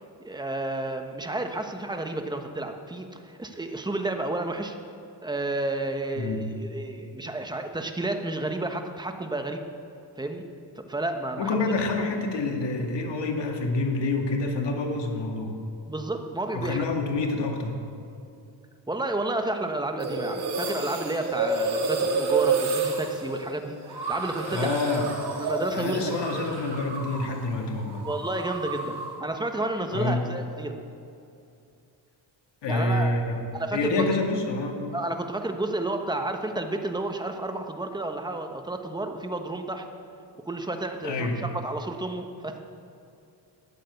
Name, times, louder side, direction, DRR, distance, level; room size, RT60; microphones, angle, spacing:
voice 1, 0.2-4.8 5.2-9.6 10.2-10.4 10.8-11.6 15.9-16.9 18.9-24.9 25.4-26.2 28.0-30.7 32.6-33.1 33.5-34.2 34.9-39.9 40.5-42.6, right 2 dB, 10° right, 5 dB, 1.2 m, -31 dB
voice 2, 11.4-15.6 16.5-17.7 24.4-25.1 25.7-28.0 29.9-30.2 32.6-33.4 33.7-34.8 41.0-41.4, left 3 dB, 60° left, 2 dB, 2.2 m, -27 dB
sound 1, 20.0-27.4 27.7-29.2, right 4 dB, 55° right, 2.7 m, -29 dB
13.0 x 9.3 x 8.0 m, 2.6 s
cardioid pair, 105°, 47 cm